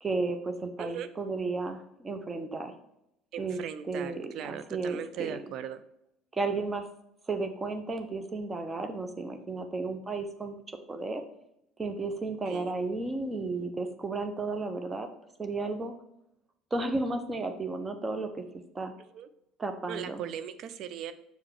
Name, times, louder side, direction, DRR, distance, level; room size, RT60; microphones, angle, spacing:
voice 1, 0.0-2.7 3.4-3.6 3.9-5.4 6.3-6.9 7.3-11.2 11.8-15.1 15.4-15.9 16.7-18.4 18.7-18.9 19.6-20.2, right 3 dB, 20° right, 7 dB, 1.0 m, -33 dB
voice 2, 0.8-1.1 3.3-5.8 12.5-12.7 19.1-19.3 19.9-21.1, right 9 dB, 50° right, 11 dB, 0.5 m, -38 dB
6.6 x 4.8 x 4.8 m, 0.80 s
figure-of-eight pair, 60°, 0 cm